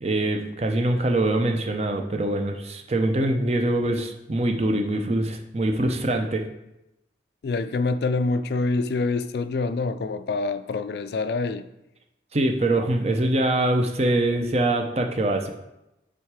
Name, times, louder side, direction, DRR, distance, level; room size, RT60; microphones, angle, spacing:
voice 1, 0.0-6.4 12.3-15.5, right 1 dB, 35° right, 0.6 m, -23 dB
voice 2, 7.4-11.7, left 3 dB, 60° left, 0.3 m, -26 dB
7.9 x 3.7 x 4.7 m
head